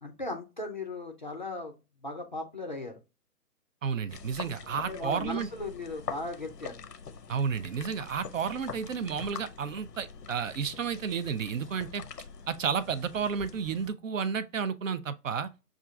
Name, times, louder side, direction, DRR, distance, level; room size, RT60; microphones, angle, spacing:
voice 1, 0.0-1.7 2.0-3.0 4.6-6.8, left 2 dB, 35° left, 0.4 m, -37 dB
voice 2, 3.8-5.5 7.3-12.0 12.5-15.5, right 6 dB, 55° right, 0.5 m, -32 dB
sound 1, 4.1-13.9, left 6 dB, 90° left, 0.7 m, -44 dB
6.3 x 2.4 x 2.2 m
hypercardioid pair, 145°, 47 cm